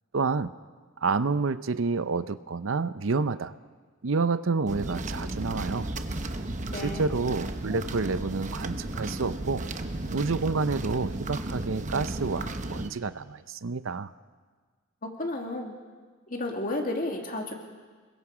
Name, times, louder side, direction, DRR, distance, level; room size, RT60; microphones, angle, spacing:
voice 1, 0.1-0.5 1.0-3.5 4.0-5.9 6.7-9.6 10.1-14.1, right 4 dB, 70° right, 14 dB, 0.6 m, -29 dB
sound 1, 4.7-12.9, right 2 dB, 35° right, 1.0 m, -34 dB
voice 2, 6.7-7.0 15.2-15.7 16.3-17.5, left 2 dB, 40° left, 2 dB, 2.6 m, -32 dB
27.5 x 22.0 x 5.0 m, 1.5 s
head